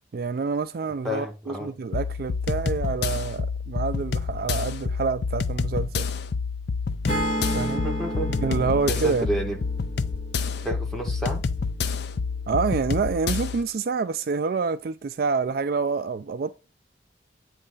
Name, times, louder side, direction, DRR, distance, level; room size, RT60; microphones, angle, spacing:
voice 1, 0.1-6.1 7.5-7.9 8.4-9.3 12.5-16.6, right 4 dB, 50° right, 0.3 m, -27 dB
voice 2, 1.0-1.7 7.8-8.3 8.9-9.6 10.6-11.4, right 1 dB, ahead, 1.4 m, -30 dB
sound 1, 1.9-13.6, left 5 dB, 60° left, 0.5 m, -28 dB
Acoustic guitar / Strum, 7.1-11.3, right 1 dB, 30° left, 1.9 m, -32 dB
8.5 x 3.3 x 3.9 m
head